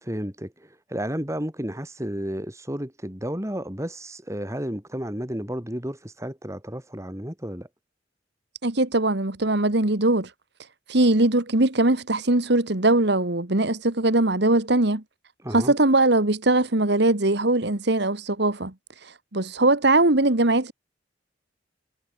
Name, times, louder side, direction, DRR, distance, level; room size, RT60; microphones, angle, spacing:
voice 1, 0.0-7.7 15.4-15.7, equal, 15° right, 3.1 m, -32 dB
voice 2, 8.6-10.3 10.9-15.0 15.5-18.7 19.3-20.7, right 2 dB, 60° right, 1.8 m, -21 dB
head